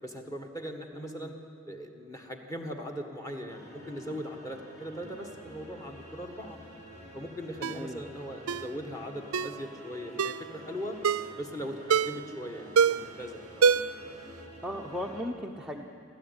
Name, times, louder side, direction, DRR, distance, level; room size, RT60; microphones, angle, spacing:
voice 1, 0.0-1.3 1.7-6.6 7.1-11.0 11.4-13.6 15.2-15.3, equal, 15° left, 4 dB, 1.8 m, -40 dB
voice 2, 0.9-1.3 7.7-8.0 14.6-15.8, equal, 5° right, 0 dB, 0.8 m, -37 dB
sound 1, 3.5-15.2, equal, 45° left, 5.8 m, -49 dB
Ringtone, 7.6-7.8 8.5-8.7 9.3-9.6 10.2-10.5 11.0-11.3 11.9-12.3 12.8-13.2 13.6-14.1 14.4-14.5, right 6 dB, 80° right, 0.5 m, -25 dB
30.0 x 13.0 x 9.7 m, 2.9 s
head